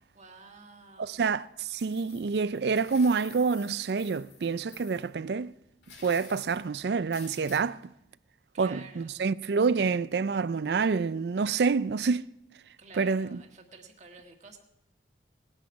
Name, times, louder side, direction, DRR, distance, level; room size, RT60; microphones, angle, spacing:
voice 1, 0.1-1.2 8.5-9.2 12.8-14.6, right 4 dB, 40° right, 1.6 m, -50 dB
voice 2, 1.0-5.5 6.0-7.8 8.6-12.3 13.0-13.4, right 5 dB, 65° right, 0.4 m, -27 dB
sound 1, 1.7-5.1 5.8-6.7 7.1-7.6, left 6 dB, 75° left, 2.4 m, -51 dB
19.5 x 10.0 x 4.7 m
head